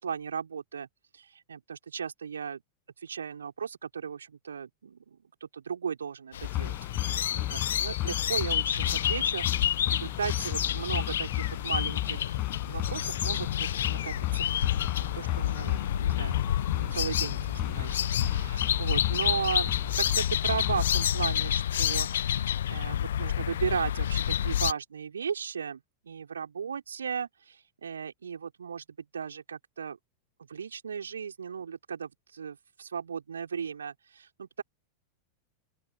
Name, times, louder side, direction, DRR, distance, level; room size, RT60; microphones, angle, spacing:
voice 1, 0.0-0.9 1.1-2.6 3.0-6.8 7.0-12.3 12.6-14.5 14.8-16.4 16.7-28.8 29.1-30.0 30.5-34.6, right 7 dB, 70° right, 4.5 m, -36 dB
sound 1, 6.3-24.7, left 10 dB, 60° left, 0.6 m, -29 dB
sound 2, 6.4-21.1, left 17 dB, 35° left, 4.3 m, -34 dB
open air
figure-of-eight pair, 90°, 0 cm